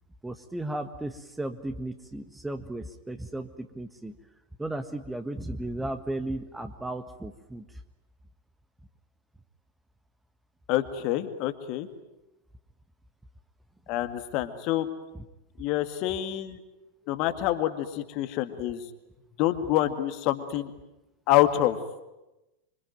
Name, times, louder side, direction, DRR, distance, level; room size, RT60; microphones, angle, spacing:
voice 1, 0.2-4.1 4.6-7.6, right 1 dB, 5° right, 8 dB, 1.5 m, -35 dB
voice 2, 10.7-11.9 13.9-14.9 15.6-16.6 17.1-18.8 19.4-20.7 21.3-21.8, left 13 dB, 40° left, 9 dB, 2.0 m, -26 dB
26.0 x 25.0 x 9.2 m, 1.0 s
figure-of-eight pair, 90°, 0 cm